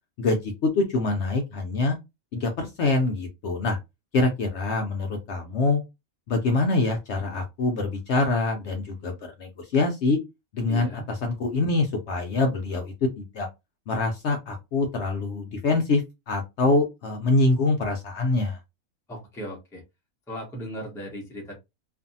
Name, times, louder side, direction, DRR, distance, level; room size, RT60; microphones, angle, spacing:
voice 1, 0.2-2.0 2.3-3.8 4.1-5.8 6.3-10.2 10.5-10.9 11.2-13.5 13.9-16.0 16.3-18.6, left 3 dB, 65° left, 3 dB, 0.7 m, -25 dB
voice 2, 10.7-11.1 19.1-19.8 20.3-21.5, equal, 5° left, 0 dB, 0.5 m, -37 dB
2.6 x 2.4 x 2.6 m, 0.23 s
omnidirectional pair, 1.5 m